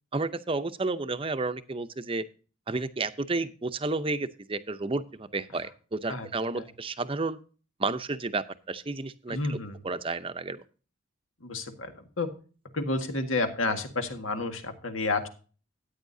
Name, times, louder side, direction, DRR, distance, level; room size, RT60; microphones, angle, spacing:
voice 1, 0.1-2.2 2.7-7.4 7.8-9.6 9.8-10.6, right 3 dB, 25° right, 11 dB, 0.7 m, -31 dB
voice 2, 9.3-9.8 11.4-12.3 12.7-15.3, left 3 dB, 90° left, 6 dB, 1.8 m, -30 dB
14.0 x 9.3 x 2.7 m, 0.37 s
head